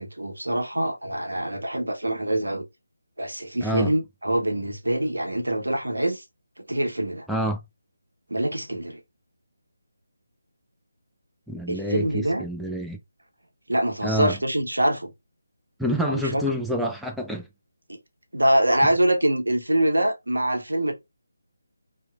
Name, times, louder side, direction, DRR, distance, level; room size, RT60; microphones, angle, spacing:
voice 1, 0.0-2.7 3.2-6.2 6.7-7.3 8.3-9.0 11.7-12.4 13.7-15.1 16.1-16.4 17.9-18.0 18.3-20.9, right 1 dB, 80° right, 0.7 m, -24 dB
voice 2, 3.6-3.9 7.3-7.6 11.5-13.0 14.0-14.4 15.8-17.5, equal, ahead, 0.3 m, -27 dB
3.0 x 2.1 x 2.2 m
figure-of-eight pair, 155°, 0 cm